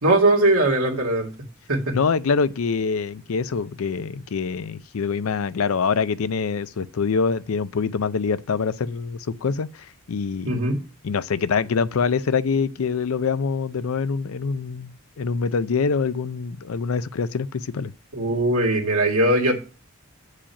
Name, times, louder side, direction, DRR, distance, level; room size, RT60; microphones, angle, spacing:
voice 1, 0.0-1.3 1.7-2.0 10.5-10.8 18.1-19.6, right 1 dB, 80° right, 2.2 m, -20 dB
voice 2, 1.9-10.6 11.0-17.9, left 5 dB, 70° left, 0.5 m, -25 dB
8.7 x 4.9 x 5.8 m
head